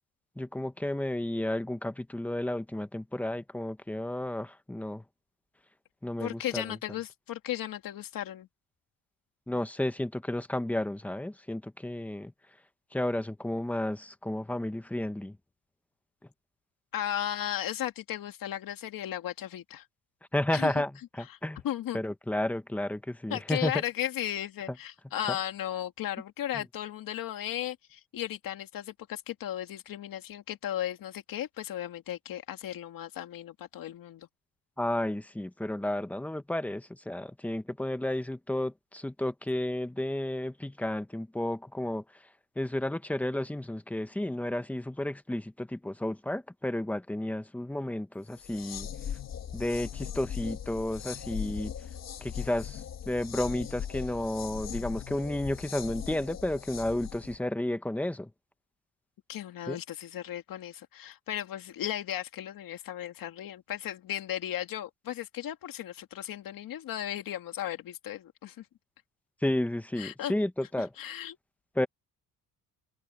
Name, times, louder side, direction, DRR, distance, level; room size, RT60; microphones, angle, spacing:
voice 1, 0.4-5.0 6.0-6.8 9.5-12.3 12.9-15.4 20.3-21.6 21.9-23.7 26.5-26.6 34.8-42.0 42.6-48.9 49.5-51.7 52.2-58.3 59.7-59.8 69.4-70.9 71.8-71.9, left 1 dB, 5° left, 0.7 m, -32 dB
voice 2, 6.2-8.5 16.9-19.9 20.5-20.8 21.3-21.4 21.6-22.0 23.3-34.3 59.3-68.7 70.0-70.3 70.8-71.4, left 11 dB, 65° left, 2.2 m, -36 dB
sound 1, 48.3-57.4, left 9 dB, 45° left, 1.7 m, -39 dB
cardioid pair, 175°, 36 cm